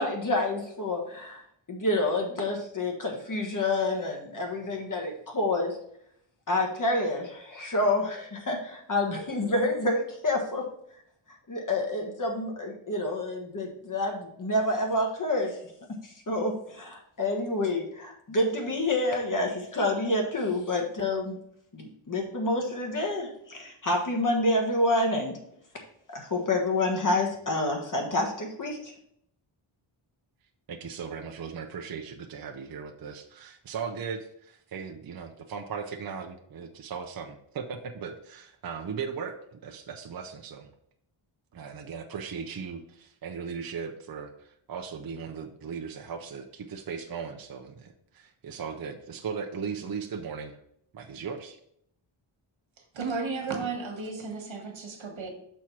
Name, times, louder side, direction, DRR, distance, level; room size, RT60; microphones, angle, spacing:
voice 1, 0.0-1.4 1.7-5.8 6.5-10.7 11.5-15.6 16.0-21.4 21.7-25.4 26.1-28.9, left 2 dB, 40° left, 1 dB, 1.4 m, -28 dB
voice 2, 30.7-40.7 41.5-50.6 50.9-51.6, right 6 dB, 45° right, 4 dB, 0.6 m, -38 dB
voice 3, 52.9-55.3, right 4 dB, 65° right, 2 dB, 1.5 m, -33 dB
6.1 x 4.4 x 4.5 m, 0.72 s
wide cardioid pair, 160°, 49 cm